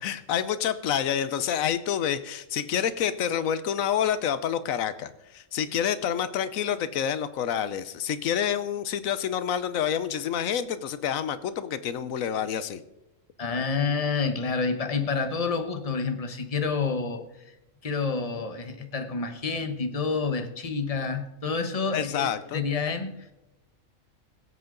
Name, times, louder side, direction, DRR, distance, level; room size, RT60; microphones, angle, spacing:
voice 1, 0.0-12.8 21.9-22.6, left 9 dB, 90° left, 13 dB, 1.2 m, -28 dB
voice 2, 13.4-17.2 17.8-23.3, left 4 dB, 30° left, 7 dB, 1.1 m, -28 dB
21.5 x 8.1 x 3.8 m, 0.95 s
omnidirectional pair, 1.4 m